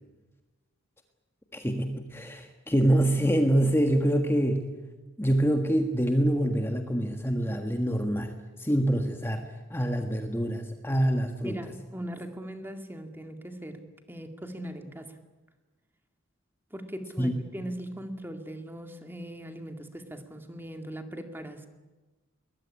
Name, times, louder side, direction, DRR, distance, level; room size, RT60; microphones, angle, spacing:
voice 1, 1.5-4.7 5.2-8.3 8.6-9.4 9.7-11.6 17.2-17.3, right 1 dB, 10° left, 5 dB, 1.5 m, -25 dB
voice 2, 11.4-13.8 14.1-15.2 16.7-21.7, equal, 10° right, 6 dB, 2.1 m, -40 dB
22.0 x 20.5 x 9.9 m, 1.2 s
head